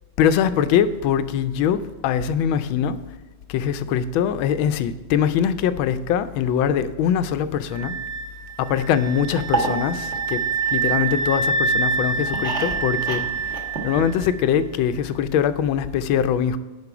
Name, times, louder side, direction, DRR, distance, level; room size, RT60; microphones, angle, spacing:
voice 1, 0.2-3.0 3.5-8.0 8.6-10.4 10.7-13.5 13.8-16.6, left 8 dB, 90° left, 1.4 m, -22 dB
sound 1, 7.7-14.5, right 4 dB, 75° right, 2.1 m, -26 dB
sound 2, 9.4-11.4 11.8-14.5 14.7-14.8 15.1-15.2, right 3 dB, 40° right, 1.6 m, -30 dB
11.0 x 4.5 x 4.8 m
omnidirectional pair, 2.1 m